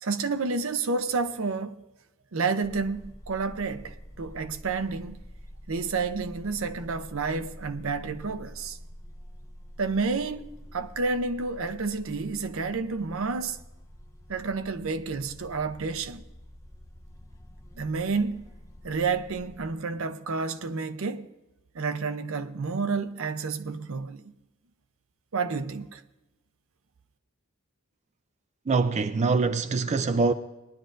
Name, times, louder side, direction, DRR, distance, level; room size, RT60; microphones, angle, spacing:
voice 1, 0.0-1.8 2.3-5.2 5.7-8.8 9.8-13.6 14.3-16.2 17.7-18.4 18.8-21.3 21.7-24.3 25.3-26.0, right 4 dB, 65° right, 0.7 m, -30 dB
sound 1, 2.6-19.7, equal, 15° left, 0.6 m, -47 dB
voice 2, 28.7-30.3, right 4 dB, 30° right, 0.4 m, -24 dB
19.0 x 11.0 x 2.6 m
head